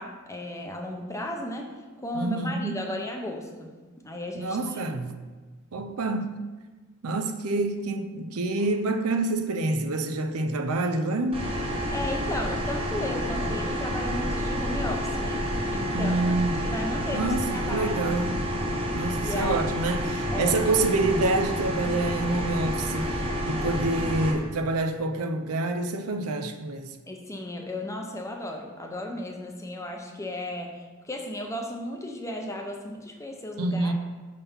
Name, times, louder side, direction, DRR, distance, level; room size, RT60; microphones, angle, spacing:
voice 1, 0.0-1.7 2.0-3.7 4.0-5.0 11.9-15.4 15.7-18.0 19.2-19.6 20.3-20.6 27.1-33.9, left 1 dB, 15° left, 0.6 m, -35 dB
voice 2, 2.1-2.9 4.4-5.2 5.7-6.5 7.0-11.4 15.9-16.6 17.1-18.4 18.9-27.0 33.6-33.9, right 2 dB, 90° right, 0.5 m, -27 dB
sound 1, 11.3-24.3, equal, 25° right, 1.0 m, -29 dB
5.7 x 3.7 x 5.5 m
head